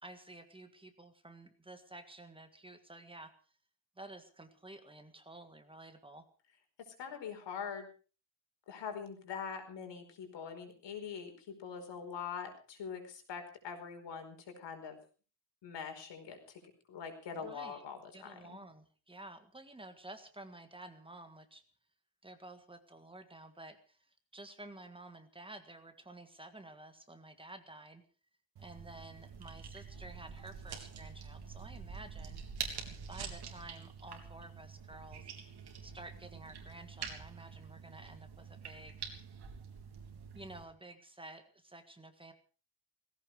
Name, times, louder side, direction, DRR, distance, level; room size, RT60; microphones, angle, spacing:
voice 1, 0.0-3.3 4.0-6.3 17.3-17.9 18.1-21.6 22.2-28.0 28.6-32.4 33.1-35.3 35.8-39.1 40.3-42.3, right 2 dB, 10° right, 8 dB, 1.6 m, -52 dB
voice 2, 7.0-7.9 8.7-11.3 11.6-15.0 15.6-16.6 16.9-18.6, left 6 dB, 85° left, 6 dB, 5.0 m, -43 dB
sound 1, 28.6-40.6, right 6 dB, 65° right, 3.7 m, -46 dB
18.5 x 16.0 x 4.8 m, 0.38 s
wide cardioid pair, 170°, 42 cm